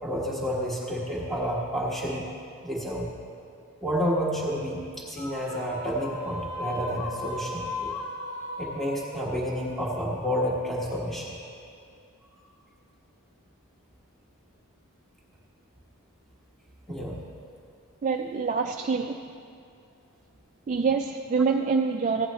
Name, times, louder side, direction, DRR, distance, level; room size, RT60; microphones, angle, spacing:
voice 1, 0.0-2.3 2.6-3.1 3.8-7.9 8.6-11.3 16.9-17.2, equal, ahead, -6 dB, 1.3 m, -30 dB
sound 1, 5.2-10.6, left 2 dB, 85° left, 1.1 m, -37 dB
voice 2, 18.0-19.2 20.7-22.3, right 5 dB, 35° right, 4 dB, 0.3 m, -26 dB
15.5 x 10.0 x 3.1 m, 2.4 s
head